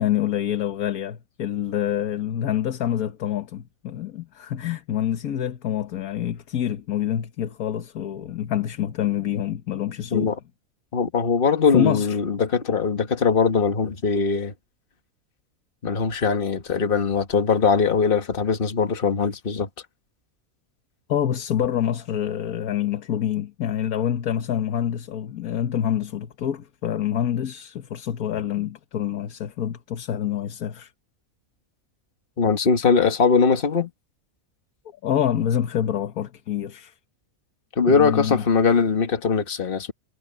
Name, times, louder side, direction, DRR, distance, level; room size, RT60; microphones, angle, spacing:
voice 1, 0.0-10.3 11.7-12.2 21.1-30.9 35.0-36.9 37.9-38.4, left 10 dB, 85° left, 1.6 m, -26 dB
voice 2, 10.9-14.5 15.8-19.7 32.4-33.9 37.8-39.9, left 5 dB, 40° left, 1.7 m, -21 dB
omnidirectional pair, 1.5 m